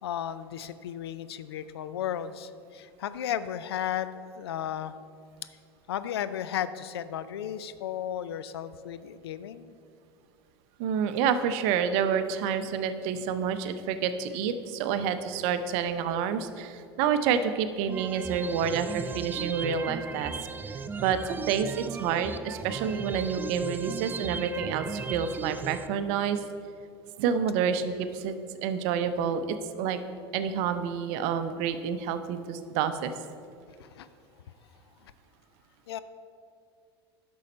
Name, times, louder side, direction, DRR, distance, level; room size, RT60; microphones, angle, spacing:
voice 1, 0.0-4.9 5.9-9.7 33.8-34.1 35.9-36.0, left 10 dB, 70° left, 13 dB, 0.4 m, -34 dB
voice 2, 10.8-20.3 20.6-26.4 27.2-28.4 28.6-30.0 30.3-33.1, right 7 dB, 50° right, 10 dB, 0.6 m, -28 dB
sound 1, 17.9-25.9, right 5 dB, 15° right, 0.4 m, -37 dB
10.5 x 6.3 x 4.2 m, 2.3 s
figure-of-eight pair, 80°, 14 cm